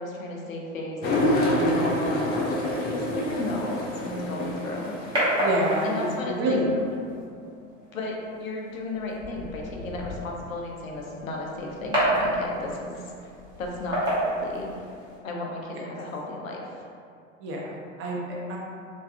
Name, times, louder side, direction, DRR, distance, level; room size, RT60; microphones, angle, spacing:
voice 1, 0.0-5.5 5.8-6.6 7.9-13.3 13.6-14.7 15.2-16.8, left 2 dB, 80° left, -1 dB, 0.6 m, -34 dB
sound 1, 1.0-6.1, left 1 dB, 25° left, 0.4 m, -27 dB
sound 2, 4.2-15.2, equal, 10° right, 1.2 m, -31 dB
voice 2, 5.4-6.8 17.4-18.6, right 1 dB, 35° right, -3 dB, 0.6 m, -28 dB
3.3 x 2.5 x 2.2 m, 2.4 s
figure-of-eight pair, 80°, 40 cm